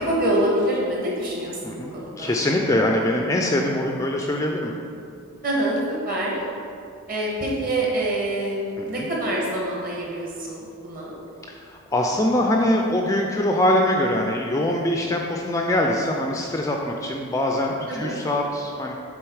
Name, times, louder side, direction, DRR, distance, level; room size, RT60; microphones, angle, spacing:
voice 1, 0.0-2.3 5.4-6.4 7.1-11.1 17.9-18.2, right 1 dB, 40° right, -4 dB, 1.5 m, -26 dB
voice 2, 1.6-4.7 8.8-9.1 11.5-18.9, left 1 dB, 15° left, 1 dB, 0.3 m, -23 dB
7.9 x 3.8 x 4.7 m, 2.5 s
head